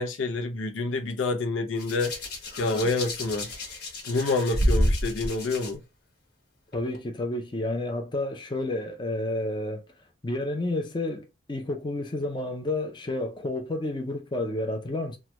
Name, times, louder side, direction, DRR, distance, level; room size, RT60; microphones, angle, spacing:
voice 1, 0.0-2.1 2.6-3.5 4.0-5.8, left 3 dB, 85° left, 0.6 m, -27 dB
Hands, 1.8-5.7 6.7-7.0, equal, 55° left, 1.0 m, -29 dB
voice 2, 6.7-9.8 10.2-15.2, left 2 dB, 25° left, 0.5 m, -30 dB
3.0 x 2.2 x 3.0 m
head